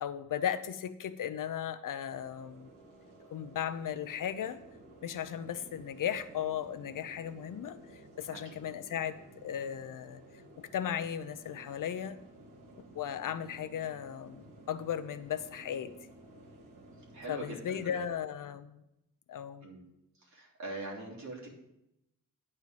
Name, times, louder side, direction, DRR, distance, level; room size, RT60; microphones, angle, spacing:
voice 1, 0.0-2.7 3.3-4.6 5.0-7.8 8.2-10.2 10.6-12.2 12.9-15.9 17.3-18.8 19.3-19.7, left 9 dB, 75° left, 12 dB, 0.7 m, -36 dB
sound 1, 2.1-18.1, right 1 dB, 80° right, 1.9 m, -54 dB
voice 2, 17.1-18.0 19.6-19.8 20.2-21.5, right 2 dB, 60° right, -2 dB, 3.1 m, -43 dB
10.5 x 4.4 x 7.8 m, 0.85 s
wide cardioid pair, 165°, 32 cm